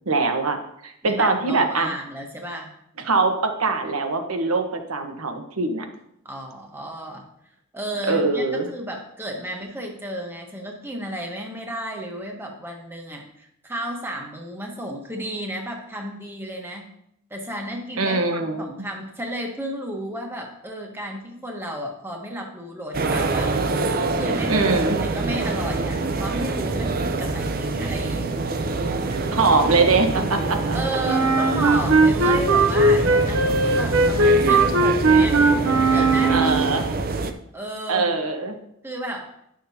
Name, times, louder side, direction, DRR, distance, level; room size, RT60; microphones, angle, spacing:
voice 1, 0.1-0.6 0.8-1.9 3.0-5.8 8.1-8.7 18.0-18.6 24.5-25.0 29.3-30.8 36.3-36.9 37.9-38.6, right 3 dB, 90° right, 5 dB, 1.1 m, -22 dB
voice 2, 1.0-2.7 6.2-7.2 7.7-16.9 17.3-23.6 24.1-24.8 25.1-28.5 30.7-35.4 35.9-36.6 37.5-38.2 38.8-39.3, equal, 10° right, 1 dB, 1.1 m, -33 dB
sound 1, 22.9-37.3, right 3 dB, 45° right, 0.5 m, -25 dB
Wind instrument woodwind instrument, 31.0-36.8, right 3 dB, 70° right, 0.8 m, -18 dB
11.5 x 6.4 x 2.8 m, 0.76 s
head